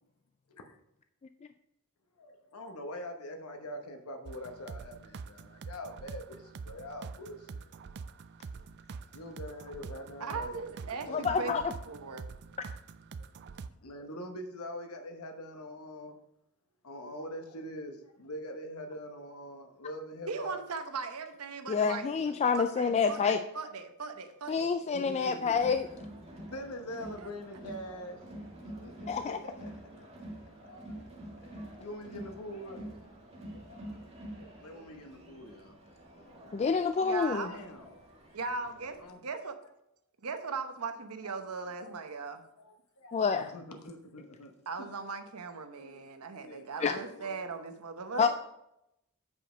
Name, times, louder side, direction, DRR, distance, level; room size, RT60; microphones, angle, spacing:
voice 1, 2.2-7.7 9.1-10.6 11.1-11.6 13.8-16.2 16.8-20.6 24.9-25.6 26.5-28.2 28.6-30.1 30.5-31.1 31.4-33.0 33.5-34.0 34.3-35.8 37.5-37.9 39.0-39.2 41.2-41.3 41.8-41.9 42.6-44.5 44.8-44.9 45.7-47.7, equal, 80° left, 5 dB, 1.0 m, -44 dB
sound 1, 4.3-13.7, right 5 dB, 50° right, 0.4 m, -45 dB
voice 2, 10.2-11.5 11.9-12.2 20.3-24.7 27.2-27.3 37.0-37.6 38.3-38.9 39.2-39.6 40.2-42.4 44.7-48.3, right 4 dB, 85° right, 7 dB, 0.9 m, -39 dB
voice 3, 11.1-11.6 21.7-23.4 24.5-25.9 29.1-29.4 36.5-37.5 43.1-43.5 46.8-47.0 48.2-48.3, left 5 dB, 30° left, 8 dB, 0.3 m, -28 dB
Crowd, 25.5-39.1, right 1 dB, 30° right, 1.6 m, -47 dB
8.5 x 5.2 x 4.9 m, 0.81 s
head